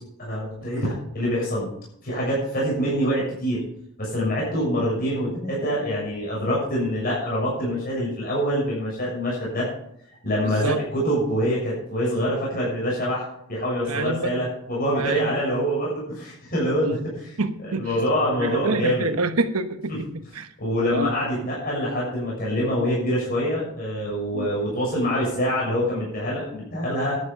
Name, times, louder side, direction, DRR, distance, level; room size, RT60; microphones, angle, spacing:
voice 1, 0.2-1.7 2.0-3.6 4.0-9.7 10.2-17.3 17.8-19.1 20.6-27.2, equal, 40° left, -5 dB, 6.6 m, -25 dB
voice 2, 10.4-10.8 13.9-14.4 15.0-15.4 16.8-17.0 17.4-17.9 18.4-20.5 20.9-21.1 24.3-24.5, right 3 dB, 85° right, 10 dB, 1.2 m, -27 dB
12.0 x 11.0 x 5.4 m, 0.72 s
head